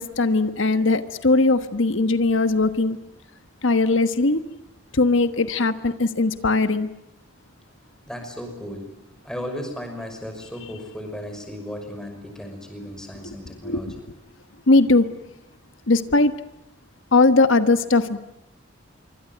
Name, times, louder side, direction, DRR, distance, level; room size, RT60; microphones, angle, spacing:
voice 1, 0.0-3.0 3.6-4.4 4.9-6.9 13.2-13.3 13.6-14.0 14.7-15.1 15.9-16.3 17.1-18.2, left 3 dB, 80° left, 11 dB, 1.3 m, -19 dB
voice 2, 8.1-8.9 9.2-13.9, equal, 5° left, 4 dB, 5.9 m, -35 dB
25.5 x 24.5 x 9.3 m, 0.83 s
head